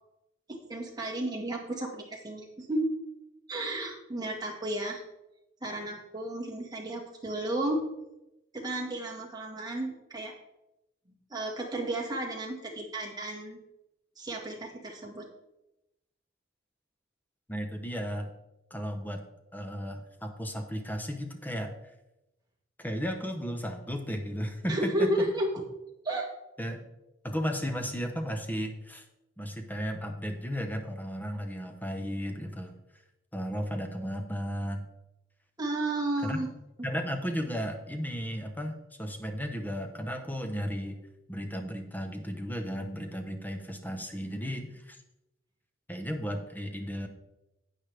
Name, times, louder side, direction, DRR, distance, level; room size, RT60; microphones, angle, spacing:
voice 1, 0.7-2.9 3.5-5.0 5.6-7.8 8.5-10.3 11.3-13.6 14.2-15.3 24.7-25.5 26.0-26.3 35.6-36.5, right 1 dB, 20° right, -1 dB, 1.8 m, -32 dB
voice 2, 17.5-18.3 18.7-19.2 19.5-21.7 22.8-25.3 26.6-26.8 27.2-29.0 29.4-32.7 33.3-34.9 36.2-36.5 36.8-41.0 41.3-45.0 45.9-47.1, equal, 10° left, 5 dB, 0.9 m, -34 dB
9.5 x 9.2 x 3.4 m, 0.92 s
head